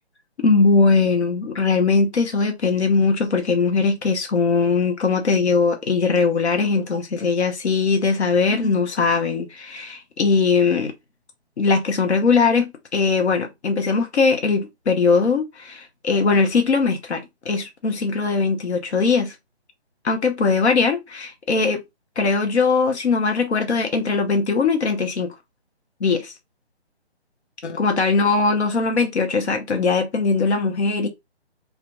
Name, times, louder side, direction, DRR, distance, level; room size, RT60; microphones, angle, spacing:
voice 1, 0.4-10.9 11.6-19.3 20.0-21.8 22.2-25.3 26.0-26.3 27.6-31.1, left 4 dB, 85° left, 0.7 m, -20 dB
2.1 x 2.1 x 2.8 m
hypercardioid pair, 165°, 33 cm